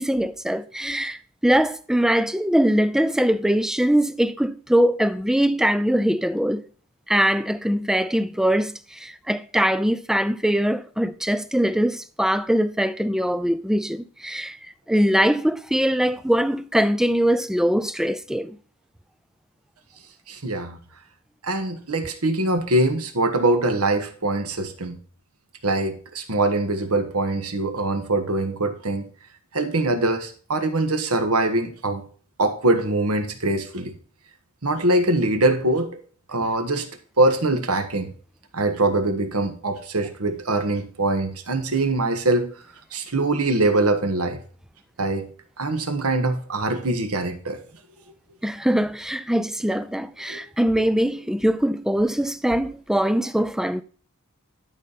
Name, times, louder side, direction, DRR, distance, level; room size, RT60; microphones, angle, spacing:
voice 1, 0.0-6.7 7.1-14.6 14.9-18.6 48.4-53.8, equal, ahead, 0.4 m, -22 dB
voice 2, 20.3-20.8 21.4-25.0 25.6-29.1 29.5-32.0 32.4-33.9 34.6-35.9 36.3-36.8 37.2-38.1 38.5-42.5 42.9-44.4 45.0-45.2 45.6-47.6 50.3-50.4, right 2 dB, 75° right, 1.5 m, -23 dB
11.5 x 5.3 x 4.1 m
head